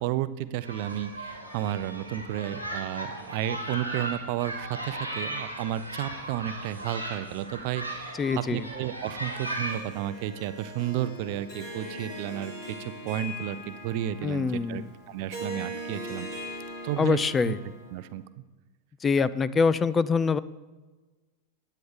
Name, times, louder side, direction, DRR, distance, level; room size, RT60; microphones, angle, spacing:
voice 1, 0.0-12.5 12.8-16.3 16.8-17.2 17.5-17.6 17.9-18.2, right 12 dB, 45° right, 14 dB, 0.5 m, -32 dB
sound 1, 0.6-9.8, right 1 dB, 90° left, 2.3 m, -37 dB
voice 2, 8.2-8.7 14.2-14.9 17.0-17.6 19.0-20.4, left 5 dB, 20° left, 17 dB, 0.4 m, -24 dB
Harp, 9.7-18.1, equal, 40° left, 3.3 m, -40 dB
14.0 x 9.3 x 3.5 m, 1.2 s
figure-of-eight pair, 90°, 0 cm